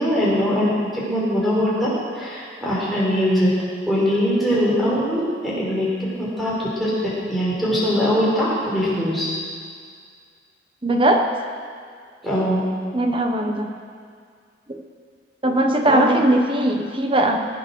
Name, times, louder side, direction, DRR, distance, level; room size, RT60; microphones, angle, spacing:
voice 1, 0.0-1.9 2.1-3.5 3.8-6.9 7.3-9.3 12.2-12.6 15.9-16.2, equal, ahead, -7 dB, 5.0 m, -21 dB
voice 2, 10.8-11.2 12.9-13.7 14.7-14.8 15.4-17.4, right 1 dB, 30° right, 3 dB, 1.2 m, -19 dB
21.0 x 8.5 x 6.4 m, 2.1 s
head